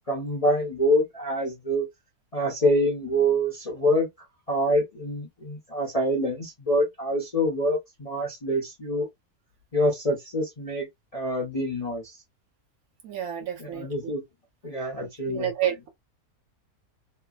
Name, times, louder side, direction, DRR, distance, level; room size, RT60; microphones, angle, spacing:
voice 1, 0.1-1.9 2.3-4.1 4.5-9.1 9.7-10.9 11.1-12.2 13.6-14.2 14.6-15.5, equal, 35° left, 0.6 m, -26 dB
voice 2, 13.0-14.1 15.0-15.9, right 10 dB, 65° right, 1.2 m, -30 dB
3.2 x 2.1 x 2.3 m
omnidirectional pair, 1.7 m